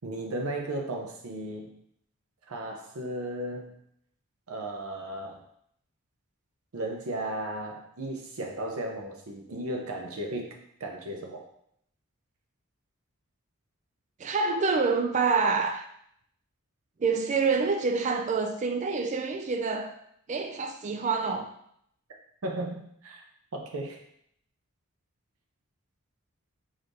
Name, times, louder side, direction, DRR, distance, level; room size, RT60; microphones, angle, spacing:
voice 1, 0.0-1.7 2.5-3.7 4.5-5.4 6.7-11.5 22.4-23.2 23.5-24.0, right 1 dB, 70° right, 2 dB, 0.7 m, -35 dB
voice 2, 14.2-15.9 17.0-19.9 20.3-21.5, right 4 dB, 35° right, 6 dB, 0.3 m, -27 dB
4.0 x 3.2 x 2.6 m, 0.70 s
head